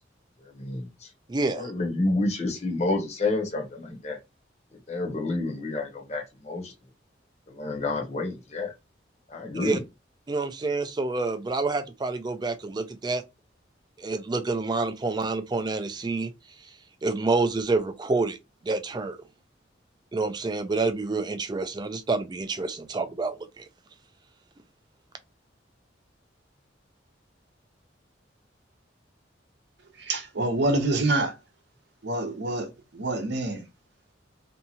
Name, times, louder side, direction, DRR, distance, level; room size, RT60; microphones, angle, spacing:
voice 1, 0.5-1.1 1.5-4.2 4.9-6.7 7.5-8.7 9.3-9.8, left 2 dB, 35° left, 0.8 m, -29 dB
voice 2, 1.3-1.7 9.6-9.8 10.3-13.2 14.0-16.3 16.6-16.7 17.0-18.4 18.6-19.2 20.1-23.6, right 3 dB, 20° right, 0.3 m, -28 dB
voice 3, 30.0-31.4 32.0-33.6, right 2 dB, 60° right, 0.7 m, -26 dB
2.7 x 2.4 x 2.7 m
head